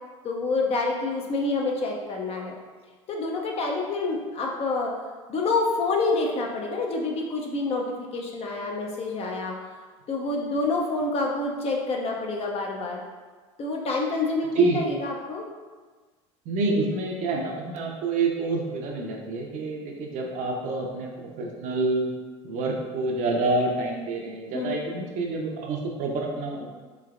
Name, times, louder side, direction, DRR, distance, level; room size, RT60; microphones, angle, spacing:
voice 1, 0.2-2.5 3.1-4.9 5.3-9.5 10.1-13.0 13.6-15.4 24.5-24.8, left 3 dB, 40° left, 0 dB, 0.5 m, -27 dB
voice 2, 14.6-14.9 16.5-22.1 22.4-26.7, right 2 dB, 50° right, 0 dB, 0.6 m, -27 dB
3.3 x 3.1 x 2.4 m, 1.4 s
hypercardioid pair, 80°, 16 cm